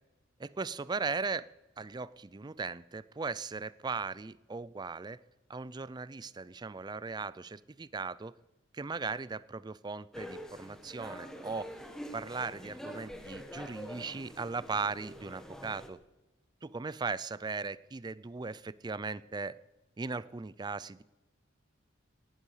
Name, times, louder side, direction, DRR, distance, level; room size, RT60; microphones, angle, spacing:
voice 1, 0.4-1.5 1.8-5.2 5.5-8.3 8.7-11.7 12.1-16.0 16.6-19.6 20.0-21.0, right 4 dB, 20° right, 19 dB, 0.4 m, -38 dB
sound 1, 10.1-15.9, equal, 5° left, 1.5 m, -45 dB
18.0 x 12.0 x 4.9 m, 0.99 s
head